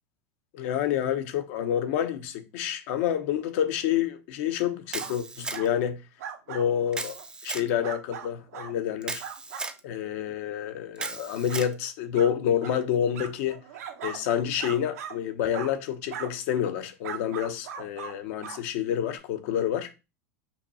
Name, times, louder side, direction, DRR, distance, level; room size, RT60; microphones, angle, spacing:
voice 1, 0.5-6.0 6.5-7.2 7.4-9.2 9.8-13.6 14.0-19.9, left 9 dB, 65° left, 0.8 m, -28 dB
Camera, 4.9-5.9 6.9-7.7 9.0-9.8 11.0-11.7, right 3 dB, 10° right, 0.4 m, -36 dB
sound 1, 5.0-5.2 5.5-5.7 6.2-6.7 7.1-7.3 7.8-8.7 9.2-9.7 10.2-10.3 11.0-11.1 11.5-11.6 12.1-12.3 12.6-12.8 13.1-14.2 14.6-15.2 15.5-15.7 16.1-16.3 17.0-18.2 18.4-18.6 19.1-19.2, right 8 dB, 85° right, 0.9 m, -39 dB
5.7 x 2.3 x 4.0 m
supercardioid pair, 125°, 8 cm